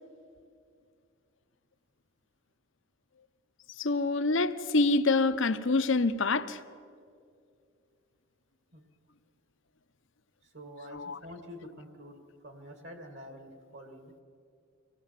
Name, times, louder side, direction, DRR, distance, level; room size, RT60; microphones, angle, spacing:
voice 1, 3.8-6.6 10.9-11.2, left 3 dB, 65° left, 0.8 m, -26 dB
voice 2, 10.5-12.2 12.4-14.1, equal, 60° right, 2.1 m, -47 dB
25.5 x 17.5 x 7.5 m
head